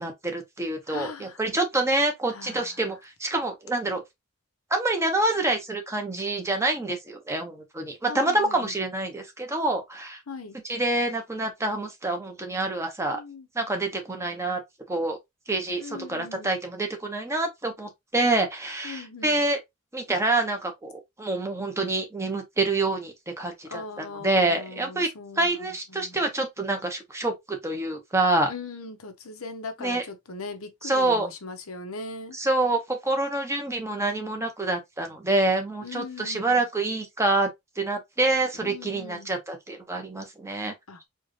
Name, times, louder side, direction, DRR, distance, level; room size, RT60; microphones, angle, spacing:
voice 1, 0.0-4.0 4.7-10.2 10.7-13.2 13.5-14.6 14.9-15.2 15.5-19.6 19.9-20.9 21.2-25.1 25.4-28.5 29.8-30.0 30.8-31.3 32.3-37.5 37.8-40.7, right 2 dB, 15° right, 1.0 m, -27 dB
voice 2, 0.9-1.4 2.3-2.9 8.1-8.7 10.3-10.6 13.1-13.5 15.8-16.6 18.8-19.5 23.6-26.2 28.5-32.4 35.8-36.7 38.5-39.3 40.9-41.0, left 3 dB, 70° left, 1.0 m, -40 dB
4.5 x 2.5 x 3.2 m
head